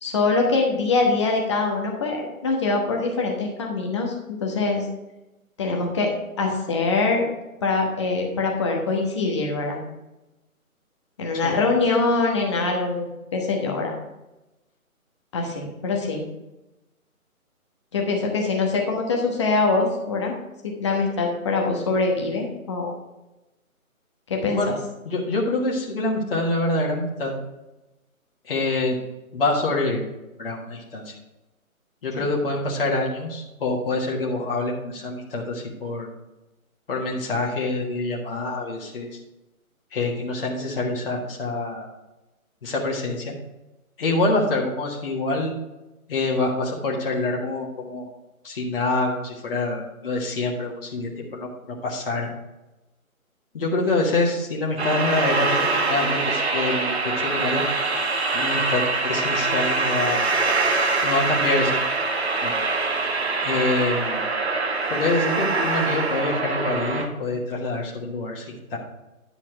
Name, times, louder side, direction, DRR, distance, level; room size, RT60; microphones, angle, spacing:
voice 1, 0.0-4.1 4.4-4.9 5.6-6.1 6.4-7.3 7.6-9.8 11.2-13.9 15.3-16.2 17.9-20.3 20.6-22.9 24.3-24.6 32.2-32.3, left 3 dB, 20° left, 0 dB, 1.1 m, -23 dB
voice 2, 25.0-27.3 28.4-29.0 29.3-30.0 30.4-31.1 32.0-36.1 36.9-39.1 39.9-41.9 42.6-43.3 44.0-45.5 46.1-48.1 48.4-52.3 53.5-57.6 58.3-60.2 61.0-61.9 62.4-62.5 63.4-64.2 64.9-68.4 68.7-68.8, left 2 dB, 40° left, -2 dB, 1.6 m, -26 dB
sound 1, 54.8-67.1, right 3 dB, 45° right, 1.2 m, -24 dB
10.5 x 6.0 x 4.6 m, 1.0 s
figure-of-eight pair, 150°, 43 cm